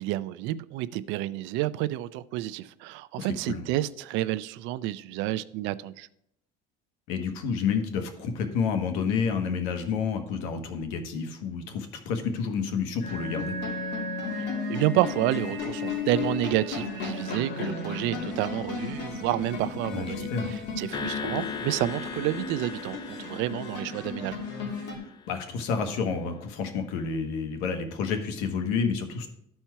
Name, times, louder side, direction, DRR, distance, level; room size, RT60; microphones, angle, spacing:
voice 1, 0.0-6.1 14.3-24.4, right 15 dB, 70° right, 0.5 m, -30 dB
voice 2, 3.2-3.6 7.1-13.6 19.9-20.5 25.3-29.3, left 5 dB, 90° left, 1.3 m, -29 dB
sound 1, 13.0-25.0, left 4 dB, 60° left, 2.5 m, -34 dB
sound 2, 20.9-25.4, left 6 dB, 20° left, 0.4 m, -38 dB
12.5 x 4.4 x 4.6 m
cardioid pair, 140°, 20 cm